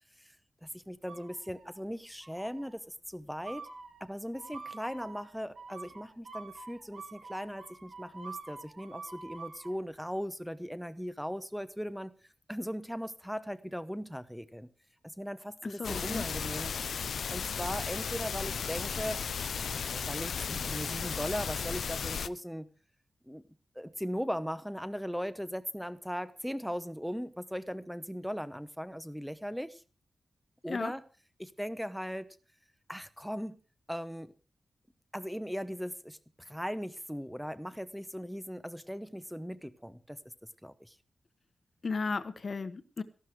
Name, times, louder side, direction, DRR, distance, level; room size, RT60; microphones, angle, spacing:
voice 1, 0.6-3.7 4.0-12.1 12.5-14.7 15.0-16.7 17.3-19.2 19.6-22.7 23.3-23.4 23.7-29.8 30.6-31.0 31.4-32.3 32.9-33.6 33.9-34.3 35.1-40.2 40.6-41.0, equal, ahead, 13 dB, 0.9 m, -38 dB
sound 1, 1.1-1.8 2.2-2.8 3.4-9.8, right 4 dB, 75° right, 3.8 m, -47 dB
voice 2, 15.6-16.2 30.7-30.9 41.8-43.0, left 4 dB, 45° left, 12 dB, 1.2 m, -35 dB
sound 2, 15.8-22.3, left 6 dB, 90° left, 0.6 m, -35 dB
14.5 x 12.0 x 4.8 m, 0.36 s
wide cardioid pair, 140°, 0 cm